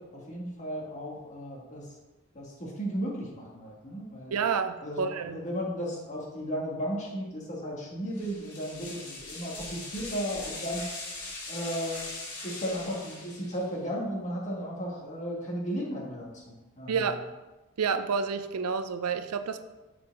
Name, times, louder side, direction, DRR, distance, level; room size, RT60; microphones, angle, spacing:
voice 1, 0.0-1.9 2.3-4.4 4.8-10.9 11.5-12.0 12.4-17.2, equal, 35° left, -3 dB, 1.8 m, -35 dB
voice 2, 4.3-5.4 16.9-17.2 17.8-19.6, right 6 dB, 85° right, 10 dB, 0.5 m, -29 dB
sound 1, 8.1-13.7, left 2 dB, 85° left, 2.2 m, -41 dB
7.0 x 4.9 x 4.7 m, 1.1 s
head